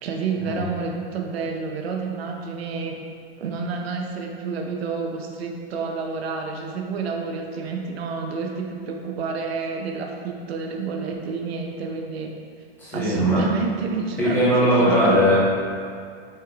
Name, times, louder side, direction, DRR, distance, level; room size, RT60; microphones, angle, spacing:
voice 1, 0.0-3.0 3.4-12.3 12.9-15.2, right 5 dB, 75° right, 2 dB, 0.6 m, -29 dB
voice 2, 12.8-13.4 14.2-15.3, equal, 5° left, -11 dB, 0.7 m, -19 dB
6.2 x 3.2 x 2.3 m, 2.2 s
supercardioid pair, 170°, 31 cm